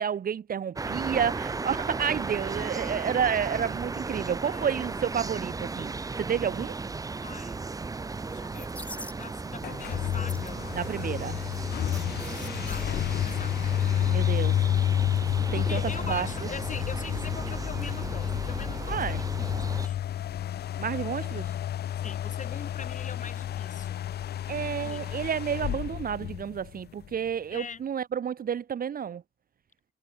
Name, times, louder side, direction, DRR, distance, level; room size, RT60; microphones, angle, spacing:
voice 1, 0.0-5.9 6.2-6.7 10.7-11.4 14.1-14.6 15.5-15.8 16.1-16.3 18.9-19.2 20.8-21.5 24.5-29.2, right 8 dB, 45° right, 1.0 m, -30 dB
sound 1, 0.8-19.9, right 3 dB, 15° right, 0.6 m, -35 dB
voice 2, 4.5-4.9 7.2-7.6 8.2-8.8 9.1-10.7 12.7-13.6 15.5-20.0 22.0-24.1 24.8-25.1 27.5-27.8, left 5 dB, 40° left, 5.5 m, -42 dB
sound 2, 8.3-9.5 9.8-14.1 14.4-14.5, left 1 dB, 5° left, 2.4 m, -46 dB
sound 3, 9.6-27.1, left 11 dB, 55° left, 0.6 m, -30 dB
cardioid pair, 90°, 20 cm